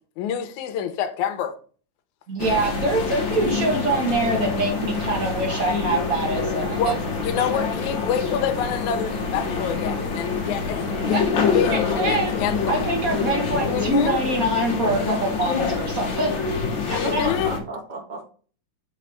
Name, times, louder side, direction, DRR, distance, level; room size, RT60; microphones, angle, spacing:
voice 1, 0.2-1.5 6.8-6.9 7.2-11.2 11.5-12.9 13.7-14.2 16.9-17.5, left 8 dB, 75° left, 2.1 m, -27 dB
voice 2, 2.3-7.0 7.4-7.6 11.1-11.2 11.7-12.4 12.7-16.4 16.9-17.2, right 2 dB, 80° right, 0.7 m, -24 dB
sound 1, 2.4-17.6, left 5 dB, 55° left, 1.4 m, -26 dB
sound 2, 4.7-14.1, right 6 dB, 65° right, 1.3 m, -39 dB
voice 3, 13.7-14.1 17.0-18.2, right 2 dB, 40° right, 0.6 m, -33 dB
6.4 x 5.2 x 3.5 m
omnidirectional pair, 3.8 m